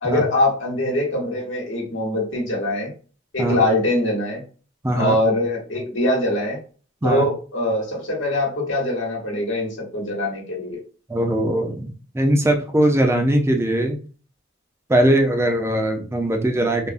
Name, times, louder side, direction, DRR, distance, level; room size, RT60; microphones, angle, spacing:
voice 1, 0.0-2.9 3.3-4.4 4.9-6.6 7.0-10.8, left 1 dB, 80° left, -2 dB, 1.0 m, -23 dB
voice 2, 4.8-5.2 7.0-7.2 11.1-14.0 14.9-16.9, right 1 dB, 15° right, 3 dB, 0.5 m, -20 dB
3.4 x 2.1 x 2.4 m, 0.38 s
head